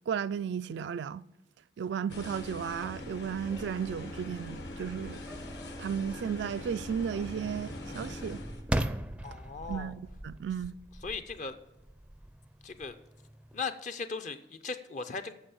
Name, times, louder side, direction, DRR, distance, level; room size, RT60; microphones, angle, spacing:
voice 1, 0.1-1.2 1.8-5.2 5.8-8.4 9.7-10.8, right 7 dB, 75° right, 0.3 m, -34 dB
sound 1, 2.1-8.6, left 1 dB, 75° left, 1.7 m, -42 dB
sound 2, 2.7-13.6, right 1 dB, 5° right, 0.4 m, -41 dB
voice 2, 9.2-10.0 11.0-11.6 12.6-13.0 13.5-15.3, left 4 dB, 45° left, 0.5 m, -38 dB
8.9 x 6.7 x 7.1 m
head